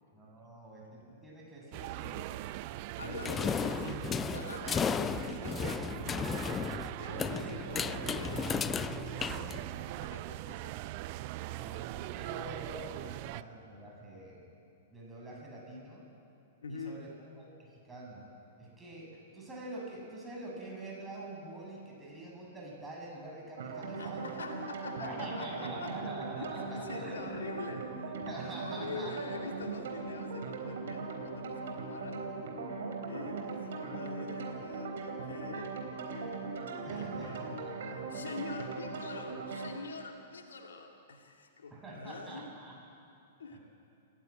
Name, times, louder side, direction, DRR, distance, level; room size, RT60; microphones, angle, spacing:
voice 1, 0.1-2.3 2.9-3.2 7.2-8.6 11.5-14.5 14.9-16.0 16.7-17.1 17.4-17.5 17.9-18.2 18.6-24.5 25.0-27.4 28.2-29.1 36.9-37.9 41.7-42.7 43.5-43.6, right 2 dB, 10° right, -3 dB, 7.8 m, -45 dB
sound 1, 1.7-13.4, right 16 dB, 40° right, 0.6 m, -41 dB
voice 2, 3.0-6.6 7.0-10.7 13.2-13.3 16.6-17.0 24.0-26.1 26.4-27.8 28.6-32.2 33.0-35.9 36.9-37.5 38.1-42.5 43.4-43.6, left 3 dB, 65° left, 3 dB, 2.2 m, -45 dB
sound 2, 3.2-10.0, left 7 dB, 20° left, 0.4 m, -35 dB
sound 3, 23.6-39.7, right 4 dB, 55° right, 3.8 m, -39 dB
28.5 x 16.0 x 8.9 m, 2.7 s
figure-of-eight pair, 105°, 0 cm